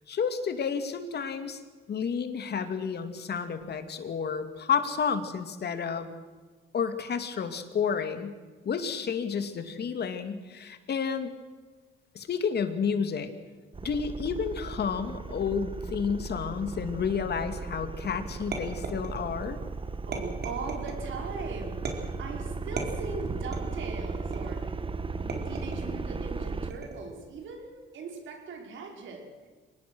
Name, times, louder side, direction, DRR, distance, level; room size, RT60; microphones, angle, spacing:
voice 1, 0.1-1.6 1.9-6.1 6.7-8.3 8.6-11.3 12.1-13.3 13.8-19.6, left 6 dB, 55° left, 8 dB, 2.6 m, -31 dB
sound 1, 13.7-26.7, right 4 dB, 25° right, 1.2 m, -36 dB
sound 2, 18.5-19.5 20.1-21.0 21.9-22.3 22.8-23.8 24.3-24.7 25.3-26.0 26.7-27.2, right 4 dB, 55° right, 4.4 m, -37 dB
voice 2, 20.1-24.8 25.2-29.5, right 4 dB, 75° right, 3 dB, 5.0 m, -40 dB
24.5 x 19.5 x 6.4 m, 1.4 s
cardioid pair, 90°, 20 cm